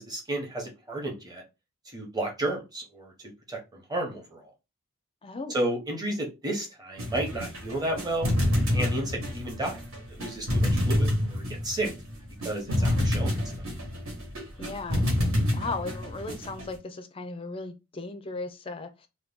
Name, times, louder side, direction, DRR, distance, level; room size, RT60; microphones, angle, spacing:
voice 1, 0.0-1.4 1.8-3.1 3.5-4.5 5.5-8.3 8.7-9.8 10.1-11.9 12.4-13.3, right 1 dB, 20° right, 0.8 m, -32 dB
voice 2, 5.2-5.6 9.0-9.3 12.8-13.1 14.6-15.0 15.5-19.1, left 3 dB, 25° left, 0.4 m, -37 dB
sound 1, 7.0-16.8, left 1 dB, 70° right, 1.3 m, -28 dB
2.9 x 2.2 x 3.4 m
head